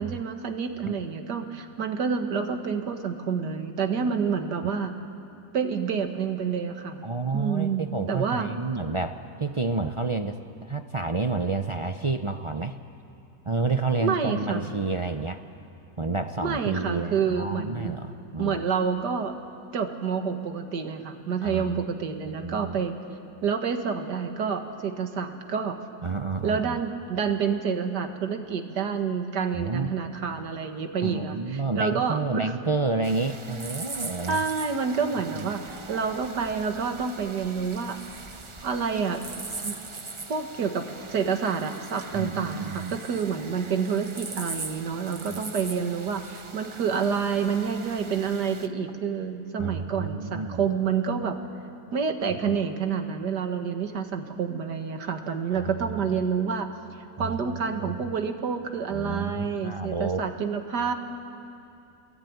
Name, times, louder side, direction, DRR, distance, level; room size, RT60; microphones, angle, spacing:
voice 1, 0.0-4.9 5.5-8.5 14.0-14.7 16.4-18.0 18.4-19.3 19.7-22.9 23.4-25.8 26.4-32.5 34.3-38.0 38.6-39.2 39.6-39.8 40.3-51.4 51.9-56.7 57.2-60.9, right 6 dB, 90° right, 6 dB, 2.2 m, -28 dB
voice 2, 7.0-12.8 13.5-15.4 16.0-18.7 21.4-21.8 22.2-22.8 26.0-26.8 29.5-29.9 31.0-34.4 35.3-35.5 42.1-43.0 45.3-45.4 49.6-50.6 55.5-55.7 57.2-57.4 57.7-58.0 58.9-60.3, right 3 dB, 55° right, 7 dB, 0.3 m, -30 dB
sound 1, 33.0-48.7, right 3 dB, 25° right, 0.7 m, -41 dB
28.5 x 21.0 x 9.6 m, 2.8 s
omnidirectional pair, 1.7 m